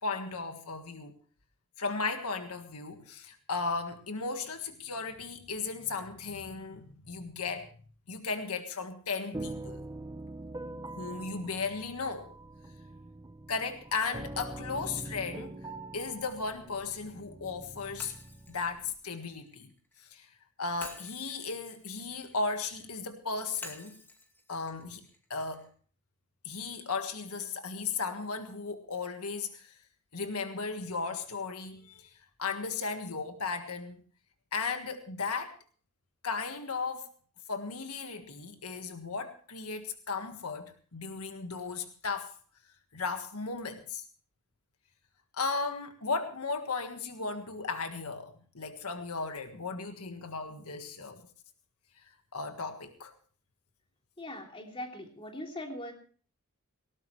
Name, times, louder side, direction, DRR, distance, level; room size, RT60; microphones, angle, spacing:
voice 1, 0.0-1.1 1.8-7.7 8.1-9.8 11.0-12.3 13.5-15.6 15.9-18.1 18.5-19.7 20.1-20.3 20.6-24.0 24.5-25.0 25.3-25.7 26.4-29.8 30.1-32.1 32.4-34.0 34.5-35.6 36.2-37.1 37.5-42.4 42.9-44.0 45.3-51.2 52.3-53.1, left 4 dB, 80° left, 6 dB, 1.6 m, -36 dB
sound 1, 9.3-18.9, right 2 dB, 20° right, 0.9 m, -44 dB
Shatter, 18.0-20.1 20.8-22.9 23.6-25.7, left 2 dB, 10° left, 2.1 m, -50 dB
voice 2, 54.2-55.9, left 1 dB, 25° left, 2 dB, 3.1 m, -41 dB
18.5 x 18.5 x 3.2 m, 0.41 s
head